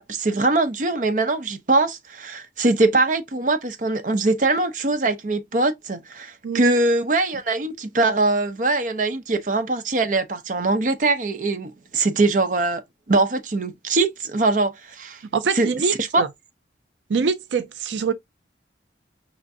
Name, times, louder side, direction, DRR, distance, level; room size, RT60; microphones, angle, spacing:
voice 1, 0.0-12.8 13.1-15.2 15.5-15.7 16.0-16.2, right 2 dB, 45° right, 0.7 m, -22 dB
voice 2, 15.3-16.3 17.1-18.1, right 5 dB, 85° right, 0.5 m, -24 dB
5.1 x 3.4 x 2.6 m
head